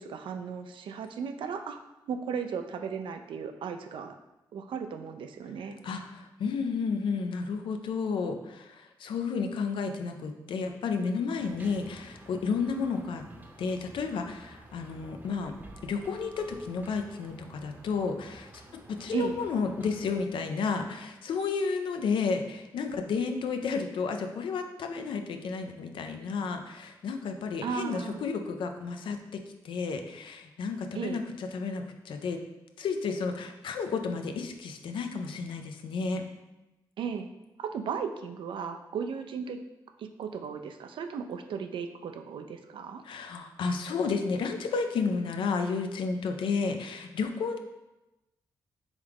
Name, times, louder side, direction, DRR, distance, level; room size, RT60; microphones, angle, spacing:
voice 1, 0.0-1.8 2.1-4.2 4.5-5.8 19.1-19.4 27.6-28.2 30.9-31.2 37.0-37.3 37.6-39.6 40.0-43.0, right 6 dB, 70° right, 6 dB, 0.4 m, -35 dB
voice 2, 5.8-13.2 13.6-15.5 15.8-32.4 32.8-36.2 43.0-47.6, left 5 dB, 75° left, 6 dB, 0.4 m, -32 dB
sound 1, 11.4-20.2, right 1 dB, 20° right, 0.7 m, -51 dB
3.6 x 3.1 x 3.4 m, 1.0 s
supercardioid pair, 55°, 9 cm